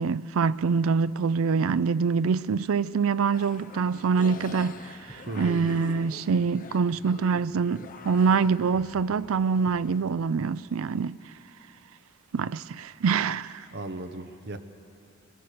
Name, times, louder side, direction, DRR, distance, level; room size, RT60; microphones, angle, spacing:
voice 1, 0.0-11.2 12.3-13.7, right 5 dB, 75° right, 0.4 m, -25 dB
sound 1, 3.3-10.0, left 3 dB, 40° left, 0.9 m, -45 dB
sound 2, 4.6-10.3, equal, 20° right, 6.0 m, -52 dB
voice 2, 5.3-5.7 13.7-14.6, right 2 dB, 50° right, 1.0 m, -36 dB
22.5 x 19.0 x 6.8 m
head